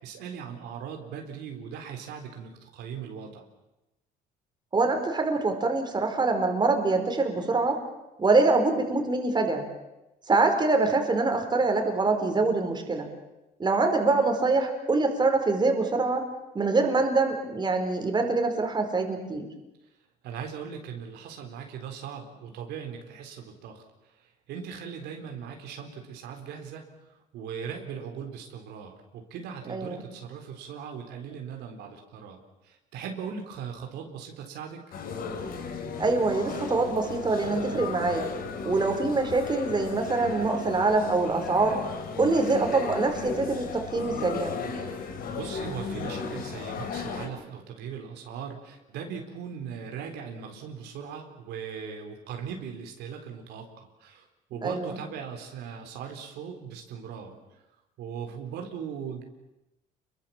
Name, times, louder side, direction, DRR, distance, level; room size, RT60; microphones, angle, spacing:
voice 1, 0.0-3.4 20.2-34.8 44.9-57.4 58.0-59.2, right 7 dB, 80° right, 3 dB, 4.0 m, -39 dB
voice 2, 4.7-7.8 8.2-9.7 10.3-13.1 13.6-16.3 16.5-19.5 29.7-30.0 36.0-38.3 38.6-41.8 42.2-44.5 54.6-54.9, right 3 dB, 25° right, 4 dB, 4.5 m, -24 dB
sound 1, 34.9-47.3, left 5 dB, 60° left, 4.6 m, -35 dB
28.5 x 22.5 x 7.3 m, 0.98 s
cardioid pair, 110°, 17 cm